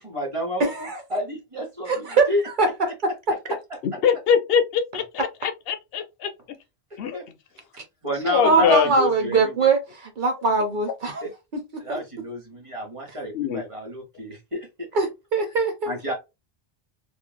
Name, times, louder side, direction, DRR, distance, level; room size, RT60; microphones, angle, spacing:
voice 1, 0.0-2.4 7.1-7.2 8.0-9.6 11.2-11.3 11.8-14.9 15.8-16.1, left 1 dB, 30° right, 1.1 m, -30 dB
voice 2, 0.6-1.0 1.9-2.3 2.6-3.4 8.4-11.2 11.5-12.0 14.9-15.9, right 3 dB, 60° right, 0.7 m, -22 dB
voice 3, 3.8-6.3 7.0-7.2 8.2-8.9 13.3-13.6, left 7 dB, 75° left, 0.8 m, -23 dB
3.0 x 2.5 x 2.2 m
omnidirectional pair, 1.0 m